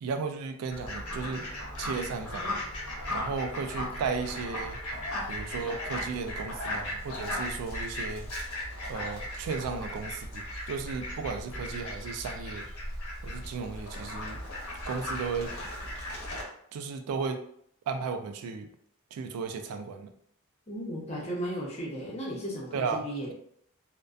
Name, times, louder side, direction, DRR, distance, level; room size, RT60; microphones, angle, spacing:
voice 1, 0.0-1.4 1.8-2.4 3.1-4.8 5.3-8.3 8.9-12.6 13.2-14.4 14.9-15.5 16.7-17.4 17.9-18.7 19.1-20.1 22.7-23.3, right 5 dB, 85° right, 8 dB, 0.3 m, -34 dB
Fowl, 0.7-16.4, left 1 dB, 90° left, 0.9 m, -37 dB
voice 2, 20.7-23.3, equal, 30° left, -4 dB, 0.6 m, -35 dB
2.5 x 2.1 x 2.3 m, 0.67 s
head